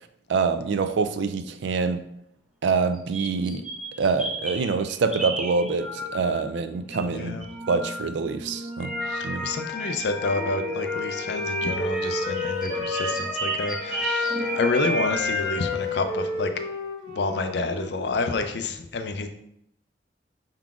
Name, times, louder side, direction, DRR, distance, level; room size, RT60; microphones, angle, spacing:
voice 1, 0.3-2.0 2.6-3.6 4.0-7.4 7.7-8.9 9.2-9.5, right 4 dB, 70° right, 11 dB, 0.4 m, -25 dB
sound 1, 2.9-6.5 6.9-15.7, equal, ahead, 0.7 m, -31 dB
voice 2, 7.1-7.4 9.0-16.5 17.1-19.3, left 3 dB, 65° left, 7 dB, 0.5 m, -29 dB
Wind instrument woodwind instrument, 10.3-18.1, left 2 dB, 85° left, 0.9 m, -32 dB
5.8 x 3.8 x 2.4 m, 0.77 s
head